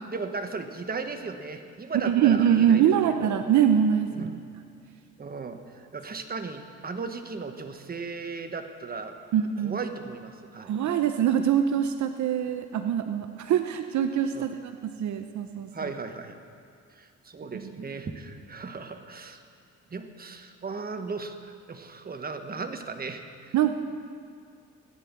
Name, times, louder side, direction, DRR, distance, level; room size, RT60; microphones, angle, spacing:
voice 1, 0.1-3.4 4.1-4.3 5.2-9.1 9.6-10.7 14.3-14.5 15.7-16.4 16.9-19.4 19.9-23.2, right 4 dB, 30° right, 7 dB, 1.3 m, -36 dB
voice 2, 2.0-4.4 9.3-9.8 10.6-15.9 17.5-17.7 23.5-23.7, right 9 dB, 70° right, 8 dB, 0.8 m, -24 dB
17.0 x 10.0 x 7.5 m, 2.3 s
cardioid pair, 90°, 30 cm